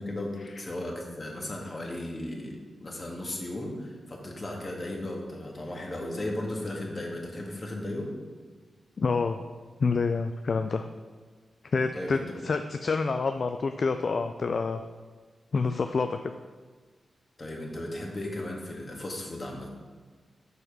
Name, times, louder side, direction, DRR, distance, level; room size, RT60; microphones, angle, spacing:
voice 1, 0.0-8.1 11.9-12.2 17.4-19.7, left 1 dB, 45° left, -1 dB, 1.9 m, -36 dB
voice 2, 9.0-9.4 9.8-10.9 11.6-14.8 15.5-16.3, left 4 dB, 60° left, 8 dB, 0.3 m, -27 dB
6.3 x 4.9 x 6.0 m, 1.5 s
supercardioid pair, 40°, 0 cm